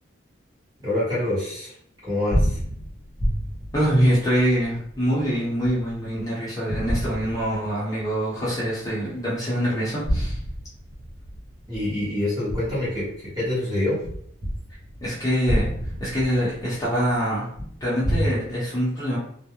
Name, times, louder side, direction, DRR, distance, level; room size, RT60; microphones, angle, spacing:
voice 1, 0.8-1.7 2.0-2.6 11.7-14.0, left 1 dB, 20° right, -8 dB, 1.0 m, -26 dB
sound 1, 2.0-6.2 6.7-8.1 8.5-8.6 9.8-13.5 14.0-18.3, equal, 50° right, 0.8 m, -29 dB
voice 2, 3.7-10.4 15.0-15.7 16.0-17.5 17.8-19.2, equal, 15° left, -9 dB, 0.8 m, -24 dB
2.3 x 2.1 x 2.9 m, 0.64 s
head